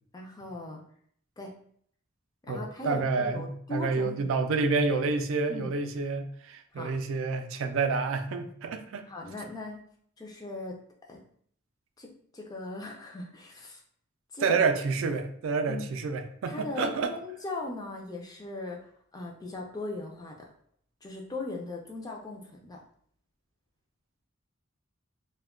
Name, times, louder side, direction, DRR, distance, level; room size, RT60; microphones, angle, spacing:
voice 1, 0.1-0.8 1.4-1.5 2.4-4.6 5.5-5.7 6.7-6.9 9.1-9.8 10.2-10.8 11.1-11.2 12.0-13.8 14.3-14.6 15.7-16.0 16.5-20.5 21.0-22.8, left 2 dB, 20° left, 0 dB, 0.3 m, -39 dB
voice 2, 2.5-9.1 14.4-17.1, right 4 dB, 70° right, 7 dB, 0.3 m, -29 dB
2.2 x 2.1 x 3.5 m, 0.62 s
head